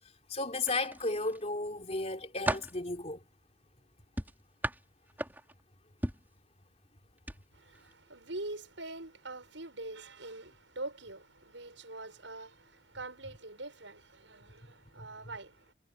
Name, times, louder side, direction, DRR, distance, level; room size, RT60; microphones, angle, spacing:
voice 1, 0.3-3.2 15.0-15.1, left 2 dB, 35° left, 3.4 m, -34 dB
sound 1, 0.6-1.4 1.9-2.8 4.2-5.6 6.0-6.3 7.2-7.4 7.7-7.9, right 1 dB, 10° right, 3.4 m, -36 dB
voice 2, 7.5-15.7, right 2 dB, 80° right, 6.9 m, -44 dB
head